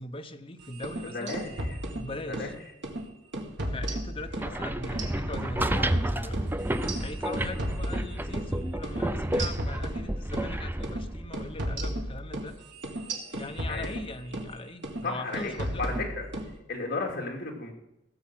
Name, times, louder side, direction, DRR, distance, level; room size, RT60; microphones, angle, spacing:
voice 1, 0.0-1.4 1.9-2.5 3.7-6.4 6.9-12.5 13.3-16.0, left 2 dB, 30° left, 7 dB, 0.9 m, -40 dB
sound 1, 0.7-2.5 2.8-3.0 3.3-4.5 4.8-8.5 8.8-9.0 9.3-10.5 10.8-11.0 11.3-14.5 14.8-15.1 15.3-16.5, right 1 dB, 70° right, 2.0 m, -34 dB
voice 2, 1.1-1.5 2.3-2.6 7.5-7.6 13.7-13.9 15.0-15.5 15.8-16.3 16.7-17.7, left 3 dB, 50° left, 1 dB, 2.7 m, -33 dB
sound 2, 4.2-12.2, right 1 dB, 10° right, 0.5 m, -31 dB
16.5 x 7.2 x 6.2 m, 0.86 s
head